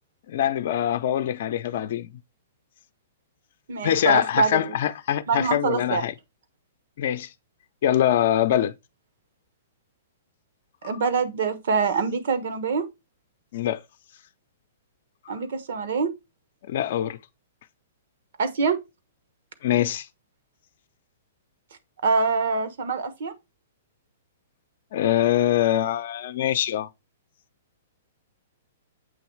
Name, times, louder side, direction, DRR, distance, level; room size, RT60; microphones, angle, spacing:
voice 1, 0.3-2.1 3.8-6.1 7.0-7.3 7.8-8.7 10.8-10.9 13.5-13.8 15.3-15.4 16.7-17.2 19.6-20.1 24.9-26.9, left 11 dB, 60° left, 0.6 m, -23 dB
voice 2, 3.7-4.8 5.3-6.0 10.8-12.9 15.3-16.1 18.4-18.8 22.0-23.3, right 5 dB, 65° right, 1.2 m, -25 dB
7.8 x 3.1 x 4.5 m
hypercardioid pair, 130°, 0 cm